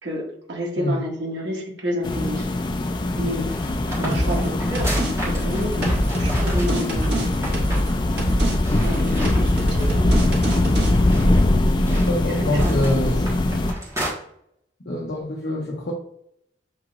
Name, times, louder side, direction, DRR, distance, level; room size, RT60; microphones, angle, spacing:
voice 1, 0.0-2.5 3.2-3.5 4.0-7.3 8.8-10.3 12.2-13.0, equal, 85° right, -3 dB, 1.6 m, -30 dB
sound 1, 2.0-13.7, left 1 dB, 25° left, 0.3 m, -22 dB
sound 2, 3.5-7.1 7.4-7.9 8.1-8.3 8.6-10.1 10.4-14.1, equal, 15° right, 1.2 m, -32 dB
sound 3, 4.1-4.5 4.7-5.1 5.4-7.9 8.2-8.5 8.8-10.9, equal, 65° right, 1.3 m, -24 dB
voice 2, 11.9-13.4 14.9-15.9, left 1 dB, 70° left, -2 dB, 0.8 m, -26 dB
7.3 x 2.9 x 2.4 m, 0.72 s
head